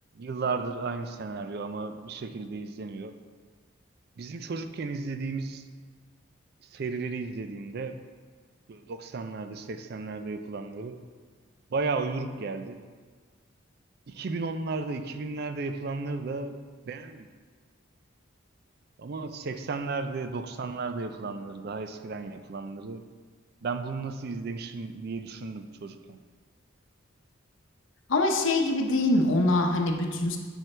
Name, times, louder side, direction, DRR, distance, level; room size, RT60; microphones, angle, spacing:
voice 1, 0.1-3.1 4.2-5.7 6.6-8.0 8.7-11.0 11.7-12.8 14.1-16.6 16.9-17.3 19.0-23.0 23.6-26.2, right 4 dB, 55° right, 9 dB, 0.4 m, -34 dB
voice 2, 28.1-30.4, left 2 dB, 70° left, 3 dB, 0.8 m, -24 dB
9.1 x 4.6 x 3.3 m, 1.5 s
head